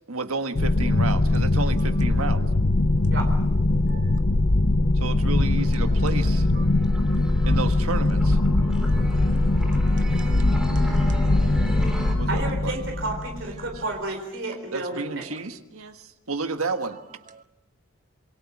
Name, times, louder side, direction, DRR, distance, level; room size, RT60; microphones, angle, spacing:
voice 1, 0.1-2.4 4.9-6.5 7.4-8.4 12.2-12.8 13.4-13.9 14.7-17.0, right 3 dB, 85° right, 1.6 m, -31 dB
sound 1, 0.5-13.8, left 2 dB, 55° left, 0.8 m, -21 dB
voice 2, 3.9-4.2 6.6-6.7 7.4-7.6 8.6-9.0 9.2-9.3 10.2-11.3 17.3-17.4, right 6 dB, 35° right, 0.9 m, -47 dB
sound 2, 4.2-4.7 5.1-5.7 6.1-6.7 7.1-7.7 8.1-8.7 9.1-9.7 10.1-10.7 11.1-11.7, equal, 85° left, 1.9 m, -34 dB
sound 3, 5.4-12.2, equal, 5° right, 3.2 m, -37 dB
voice 3, 12.3-15.2, right 2 dB, 55° right, 4.3 m, -31 dB
26.5 x 22.5 x 6.0 m
head